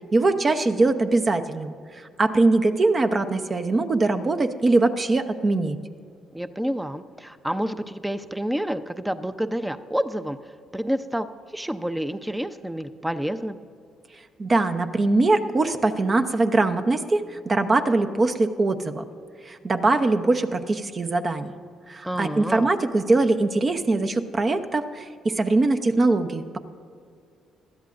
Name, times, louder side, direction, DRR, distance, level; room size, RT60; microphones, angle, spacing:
voice 1, 0.1-5.8 14.4-19.0 19.4-21.5 21.9-26.4, right 2 dB, 40° right, 7 dB, 0.9 m, -22 dB
voice 2, 6.3-10.4 10.7-13.6 22.0-22.7, equal, 10° right, 10 dB, 0.7 m, -29 dB
20.0 x 13.0 x 2.6 m, 2.2 s
hypercardioid pair, 55°, 0 cm